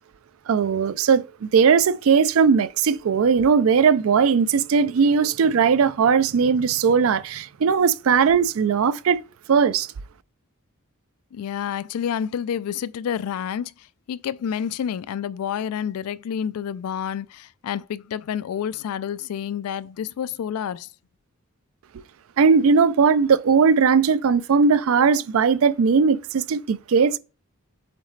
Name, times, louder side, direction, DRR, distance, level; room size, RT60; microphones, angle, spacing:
voice 1, 0.5-9.2 9.5-9.9 22.4-27.2, right 6 dB, 65° right, 0.4 m, -19 dB
voice 2, 11.3-13.7 14.1-20.9, left 8 dB, 85° left, 0.3 m, -29 dB
7.4 x 4.0 x 3.2 m
head